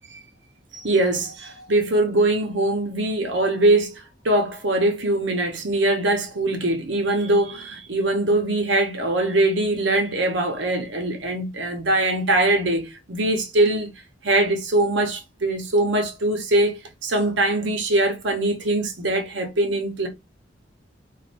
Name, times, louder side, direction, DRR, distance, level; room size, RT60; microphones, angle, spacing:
voice 1, 0.7-13.9 14.2-20.1, right 2 dB, 85° right, 0.9 m, -22 dB
3.1 x 2.5 x 2.5 m
head